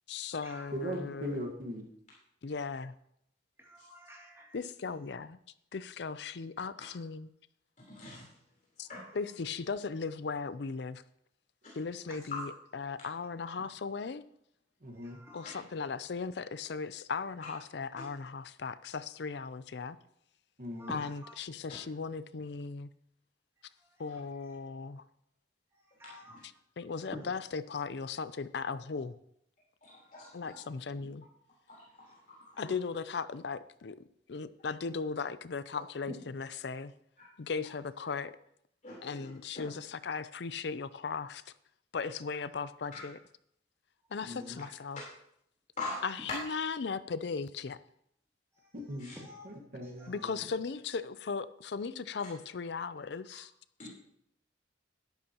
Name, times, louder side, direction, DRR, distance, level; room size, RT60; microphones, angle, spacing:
voice 1, 0.1-1.4 2.4-2.9 4.5-5.4 5.7-7.3 8.8-8.9 9.1-11.0 11.7-14.2 15.3-20.0 20.9-22.9 24.0-25.0 26.4-29.2 30.3-31.3 32.6-36.9 37.4-38.4 39.0-41.5 41.9-43.2 44.1-45.0 46.0-47.8 50.1-53.5, left 5 dB, 65° left, 15 dB, 0.5 m, -37 dB
voice 2, 0.7-1.9 14.8-15.2 20.6-20.9 44.2-44.6 48.7-49.1 49.4-50.1, equal, 50° right, 1 dB, 1.5 m, -39 dB
voice 3, 3.6-4.5 15.0-15.5 20.8-20.9 21.2-21.3 26.0-26.4 49.2-49.4 50.0-50.1, equal, 15° right, -2 dB, 2.6 m, -50 dB
voice 4, 7.9-8.2 8.9-9.2 9.7-9.8 12.1-12.4 15.4-15.6 20.9-21.0 24.0-24.1 29.8-30.6 31.7-31.8 32.4-32.8 38.8-39.3 39.6-39.7 41.9-42.1 42.9-43.0 45.8-46.1 49.0-49.1 53.8-53.9, left 3 dB, 45° left, -6 dB, 3.7 m, -43 dB
12.5 x 11.5 x 3.0 m, 0.72 s
head